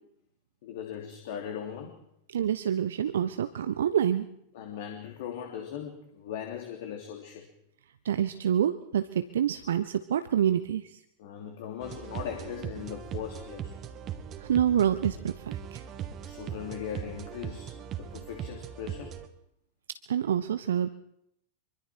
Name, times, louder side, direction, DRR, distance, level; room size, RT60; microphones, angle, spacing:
voice 1, 0.6-2.0 4.5-7.5 11.2-13.8 16.2-19.1, left 9 dB, 55° left, 2 dB, 3.0 m, -39 dB
voice 2, 2.3-4.3 8.0-11.0 14.4-15.8 20.1-20.9, right 9 dB, 65° right, 12 dB, 0.8 m, -27 dB
sound 1, 11.8-19.3, right 9 dB, 30° right, 2.0 m, -39 dB
25.0 x 24.0 x 4.6 m, 0.74 s
figure-of-eight pair, 90°, 0 cm